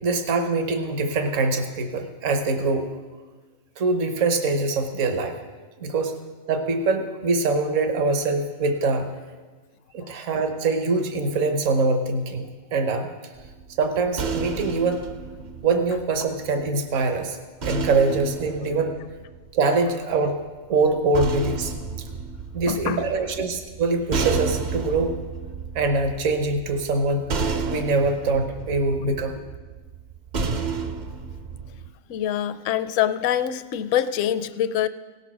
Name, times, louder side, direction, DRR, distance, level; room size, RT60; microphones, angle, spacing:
voice 1, 0.0-2.9 3.8-5.4 5.8-6.1 6.5-9.2 9.9-13.1 13.8-15.0 15.6-19.0 19.5-20.4 20.7-21.7 22.5-25.1 25.7-27.3 27.7-29.4, right 3 dB, 65° right, 6 dB, 1.3 m, -23 dB
sound 1, 13.4-16.7 17.6-19.9 20.8-31.9, right 5 dB, 45° right, 0.6 m, -32 dB
voice 2, 22.7-23.1 32.1-34.9, left 10 dB, 70° left, 12 dB, 0.9 m, -25 dB
17.5 x 7.1 x 6.0 m, 1.4 s
omnidirectional pair, 1.4 m